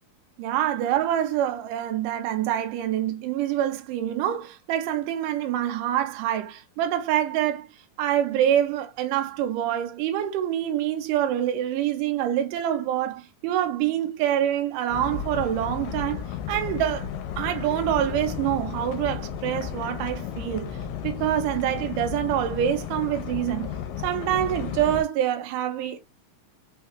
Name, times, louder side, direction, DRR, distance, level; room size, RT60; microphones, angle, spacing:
voice 1, 0.4-7.7 8.0-16.2 16.5-17.1 17.4-20.8 21.0-23.7 24.0-26.0, right 11 dB, 75° right, 2.1 m, -26 dB
sound 1, 14.9-25.0, left 8 dB, 80° left, 2.2 m, -33 dB
5.5 x 2.3 x 2.9 m
omnidirectional pair, 4.1 m